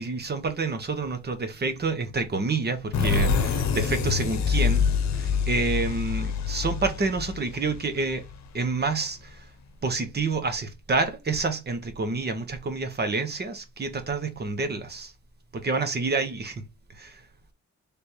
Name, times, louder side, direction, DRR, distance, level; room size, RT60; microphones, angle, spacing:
voice 1, 0.0-8.2 8.5-9.4 9.8-15.1 15.5-16.6 16.9-17.2, right 3 dB, 35° right, 1.1 m, -28 dB
sound 1, 2.9-8.4, left 6 dB, 60° left, 0.9 m, -26 dB
3.5 x 3.2 x 4.4 m
cardioid pair, 90°, 30 cm